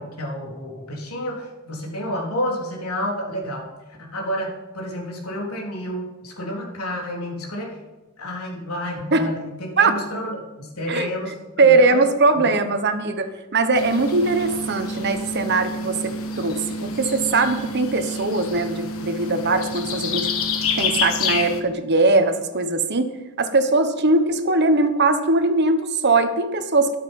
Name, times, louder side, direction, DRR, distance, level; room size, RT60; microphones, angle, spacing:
voice 1, 0.0-3.7 4.0-7.8 8.2-12.0 12.3-12.5, equal, 90° left, -1 dB, 3.6 m, -30 dB
voice 2, 11.6-20.3 20.8-23.1 23.4-26.9, right 3 dB, 50° right, 8 dB, 1.2 m, -20 dB
sound 1, 13.7-21.6, left 3 dB, 70° left, 1.5 m, -28 dB
13.5 x 11.5 x 5.5 m, 1.1 s
head